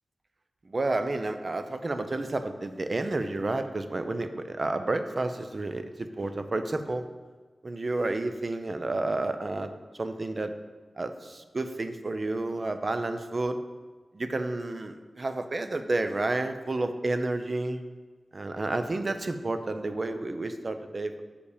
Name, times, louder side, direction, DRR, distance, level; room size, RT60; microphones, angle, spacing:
voice 1, 0.6-7.0 7.6-10.5 11.0-13.6 14.1-17.8 18.3-21.2, right 2 dB, 45° right, 8 dB, 0.5 m, -30 dB
6.9 x 5.0 x 4.9 m, 1.3 s
wide cardioid pair, 80°, 0 cm